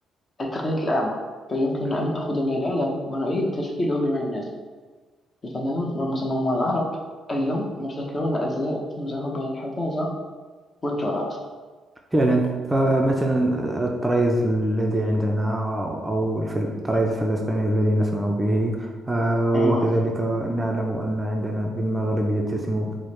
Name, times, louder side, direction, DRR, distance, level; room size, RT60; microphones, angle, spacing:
voice 1, 0.4-1.1 1.5-4.5 5.4-6.9 7.3-10.1 10.8-11.4 19.5-19.9, left 1 dB, 35° left, -1 dB, 0.7 m, -26 dB
voice 2, 12.1-23.0, right 1 dB, 15° right, 1 dB, 0.4 m, -23 dB
4.6 x 2.0 x 3.2 m, 1.4 s
cardioid pair, 90°, 0 cm